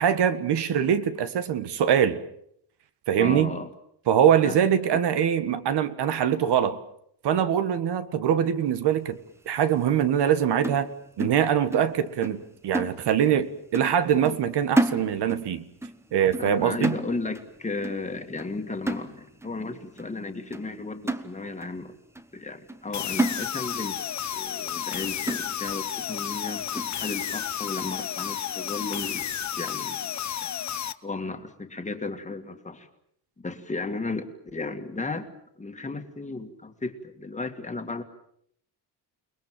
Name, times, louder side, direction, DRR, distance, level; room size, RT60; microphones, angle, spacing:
voice 1, 0.0-2.2 3.1-3.5 4.1-6.8 7.2-9.2 9.4-10.9 11.2-15.6 16.1-17.0, right 9 dB, 70° right, 1.7 m, -23 dB
voice 2, 3.2-3.7 4.4-5.0 16.4-21.9 22.3-24.0 24.3-29.3 29.5-30.1 30.4-30.5 31.0-32.9 33.4-35.3 35.6-38.0, left 3 dB, 15° left, 2.0 m, -34 dB
sound 1, 10.6-12.0 12.2-12.5 12.7-13.4 13.7-14.0 14.3-15.5 15.8-16.0 16.3-16.6 16.8-17.5 17.8-18.1 18.4-18.6 18.9-19.5 20.0-20.1 20.5-20.7 21.1-21.8 22.2-22.3 22.7-22.9 23.2-23.9 24.2-24.3 24.8-24.9 25.3-25.8 26.3-26.4 26.8-27.0, right 2 dB, 5° right, 1.1 m, -30 dB
sound 2, 22.9-30.9, left 9 dB, 40° left, 1.0 m, -32 dB
29.5 x 20.0 x 7.6 m
cardioid pair, 155°, 42 cm